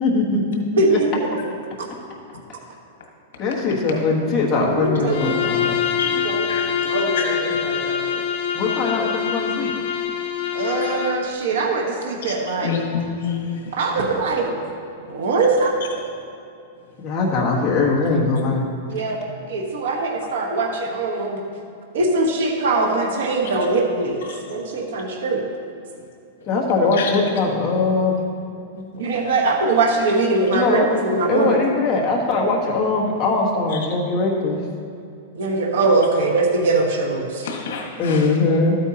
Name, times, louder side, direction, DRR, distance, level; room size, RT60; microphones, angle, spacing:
voice 1, 0.0-1.0 3.4-5.7 8.5-9.7 17.0-18.6 26.5-28.2 30.5-30.9 31.3-34.6 38.0-38.8, left 3 dB, 20° left, -3 dB, 1.3 m, -21 dB
voice 2, 0.8-1.1 3.9-4.0 4.6-5.3 6.0-8.2 10.5-12.8 13.8-14.5 15.0-15.7 18.9-19.2 19.5-21.4 21.9-24.2 24.5-25.4 28.7-31.6 35.3-37.5, right 3 dB, 70° right, 0 dB, 1.3 m, -22 dB
Bowed string instrument, 5.1-11.3, left 8 dB, 45° left, 0.8 m, -24 dB
voice 3, 6.0-6.6 7.2-7.3 12.2-13.6 27.0-27.1 37.4-38.2, left 7 dB, 70° left, 0 dB, 1.7 m, -28 dB
12.5 x 8.9 x 2.9 m, 2.6 s
supercardioid pair, 175°, 0 cm